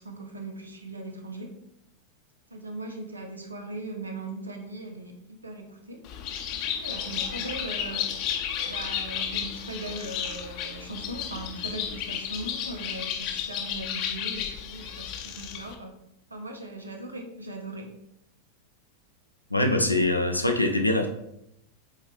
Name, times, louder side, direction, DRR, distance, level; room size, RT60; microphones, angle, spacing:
voice 1, 0.0-1.6 2.5-5.2 5.4-8.4 8.6-16.0 16.3-17.9, right 2 dB, 80° right, 3 dB, 1.0 m, -39 dB
Bird, 6.0-15.7, left 9 dB, 45° left, 0.9 m, -33 dB
voice 2, 19.5-21.1, left 1 dB, 85° left, 4 dB, 0.7 m, -23 dB
7.7 x 4.1 x 3.3 m, 0.78 s
figure-of-eight pair, 90°, 0 cm